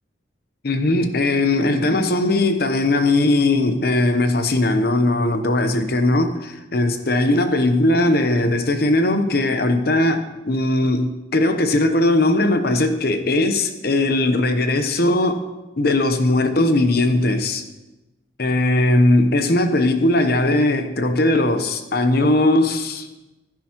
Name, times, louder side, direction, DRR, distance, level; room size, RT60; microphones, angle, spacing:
voice 1, 0.6-15.4 15.8-17.6 18.4-23.1, left 2 dB, 55° left, 7 dB, 0.9 m, -19 dB
15.5 x 9.4 x 3.0 m, 1.0 s
head